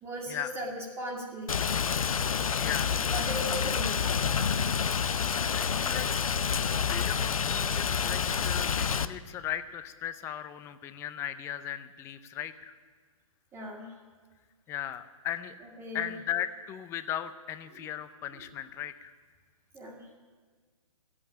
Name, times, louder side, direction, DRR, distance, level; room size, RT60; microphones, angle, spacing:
voice 1, 0.0-1.7 3.1-4.1 13.5-13.9 15.8-16.1 19.7-20.1, equal, 15° right, -2 dB, 1.9 m, -38 dB
Rain, 1.5-9.1, left 6 dB, 90° left, 0.7 m, -28 dB
voice 2, 2.6-3.1 5.5-6.1 6.8-12.7 14.7-15.5 15.9-19.1, left 11 dB, 15° left, 12 dB, 0.5 m, -37 dB
13.0 x 8.6 x 10.0 m, 1.5 s
hypercardioid pair, 145°, 17 cm